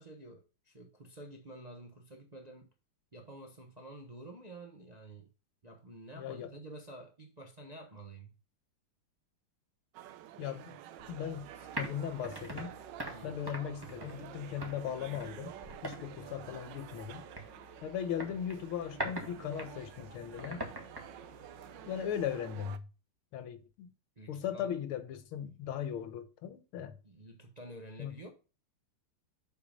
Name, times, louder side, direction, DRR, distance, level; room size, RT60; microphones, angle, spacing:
voice 1, 0.0-2.7 3.1-5.3 5.6-8.3 13.1-13.3 24.2-24.7 27.0-28.3, right 1 dB, 30° right, 0.7 m, -50 dB
voice 2, 6.2-6.5 10.4-10.8 11.1-11.5 11.7-12.8 13.2-15.5 15.8-17.2 17.8-20.6 21.8-22.9 23.3-23.9 24.3-26.9 28.0-28.2, left 9 dB, 80° left, 1.7 m, -38 dB
sound 1, 9.9-22.8, right 11 dB, 70° right, 1.1 m, -50 dB
sound 2, 11.0-22.4, right 1 dB, 10° right, 1.3 m, -45 dB
7.1 x 4.9 x 5.1 m
omnidirectional pair, 2.4 m